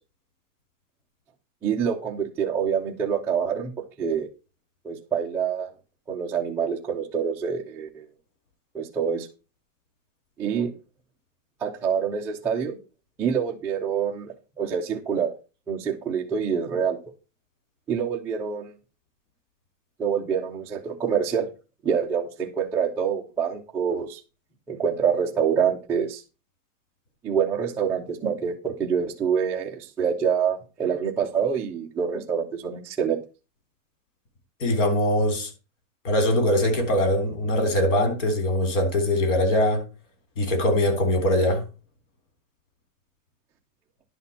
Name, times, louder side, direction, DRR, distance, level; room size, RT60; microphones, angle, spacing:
voice 1, 1.6-3.7 4.0-4.3 4.8-5.7 6.1-8.0 8.7-9.3 10.4-10.7 11.6-12.8 13.2-15.4 15.7-17.0 17.9-18.7 20.0-21.5 21.8-24.2 24.7-26.2 27.2-33.2, right 7 dB, 5° right, 0.4 m, -26 dB
voice 2, 34.6-35.5 36.0-39.8 40.4-41.6, left 1 dB, 65° left, 3.8 m, -22 dB
11.0 x 4.1 x 7.2 m
supercardioid pair, 175°, 39 cm